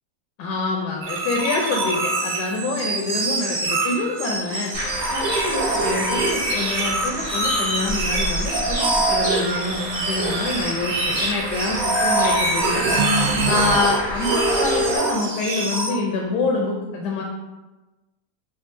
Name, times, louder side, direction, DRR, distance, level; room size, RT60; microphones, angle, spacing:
voice 1, 0.4-12.9 13.5-17.2, left 3 dB, 80° left, 0 dB, 1.1 m, -26 dB
sound 1, 1.0-15.9, right 2 dB, 85° right, 1.4 m, -24 dB
sound 2, 4.7-15.0, equal, 30° left, 0.7 m, -30 dB
5.2 x 2.4 x 2.5 m, 1.1 s
omnidirectional pair, 1.8 m